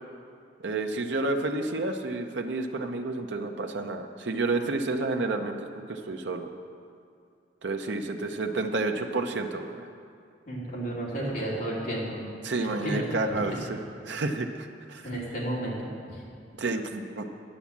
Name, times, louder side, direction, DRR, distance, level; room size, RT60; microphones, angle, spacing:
voice 1, 0.6-5.6 5.9-6.5 7.6-9.9 12.4-13.8 14.1-15.0 16.6-17.2, right 2 dB, 90° right, 4 dB, 0.7 m, -30 dB
voice 2, 10.5-12.2 12.6-13.0 13.3-13.4 15.0-16.2, right 1 dB, 55° left, -5 dB, 3.0 m, -32 dB
10.0 x 8.2 x 7.3 m, 2.3 s
head